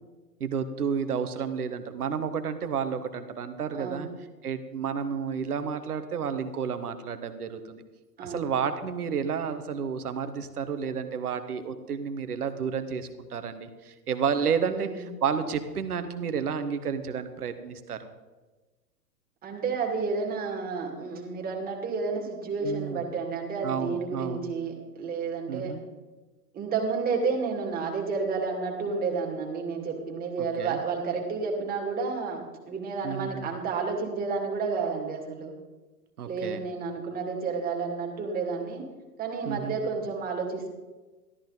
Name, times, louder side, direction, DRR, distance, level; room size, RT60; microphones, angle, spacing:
voice 1, 0.4-4.1 4.4-7.8 8.2-18.1 22.6-23.0 23.6-24.5 25.5-25.8 30.4-30.8 33.0-33.5 36.2-36.6 39.4-39.7, right 6 dB, 65° right, 10 dB, 1.4 m, -31 dB
voice 2, 3.8-4.1 8.2-8.5 14.6-15.0 19.4-25.8 26.5-35.5 36.2-38.9 39.2-40.7, right 4 dB, 20° right, 1 dB, 2.3 m, -31 dB
13.5 x 13.0 x 4.0 m, 1.2 s
figure-of-eight pair, 110°, 49 cm